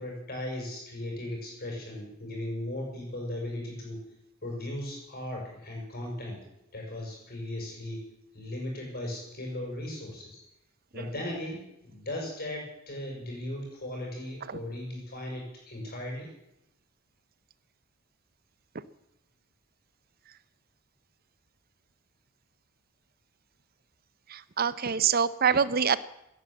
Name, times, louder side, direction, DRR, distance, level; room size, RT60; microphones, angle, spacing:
voice 1, 0.0-4.0 4.4-6.4 6.7-8.0 8.3-10.4 10.9-16.3, left 1 dB, 45° left, 0 dB, 6.3 m, -37 dB
voice 2, 24.3-26.0, right 7 dB, 45° right, 16 dB, 0.7 m, -25 dB
16.5 x 11.0 x 7.4 m, 0.85 s
head